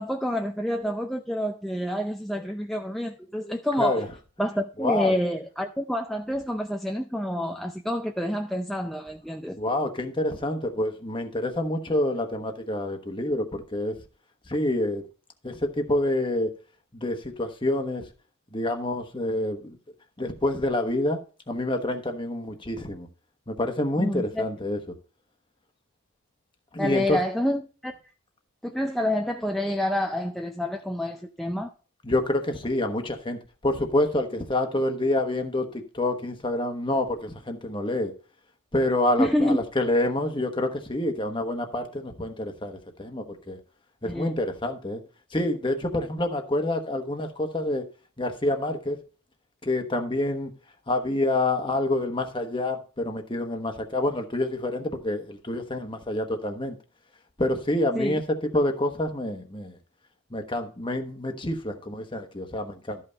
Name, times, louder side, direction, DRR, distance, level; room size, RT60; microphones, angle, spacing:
voice 1, 0.0-4.0 4.4-9.6 24.0-24.4 26.8-27.9 28.6-31.7 39.2-39.6 44.0-44.4 57.9-58.2, left 1 dB, ahead, 0.4 m, -28 dB
voice 2, 3.4-4.1 4.8-5.1 9.5-14.0 14.5-15.0 15.4-16.5 16.9-18.0 18.5-19.8 20.2-23.1 23.5-24.8 26.7-27.2 32.0-38.1 38.7-43.6 44.0-45.0 45.3-47.8 48.2-49.0 49.6-50.5 50.9-56.8 57.4-59.7 60.3-63.0, left 1 dB, 25° left, 1.2 m, -27 dB
12.5 x 5.6 x 4.0 m
head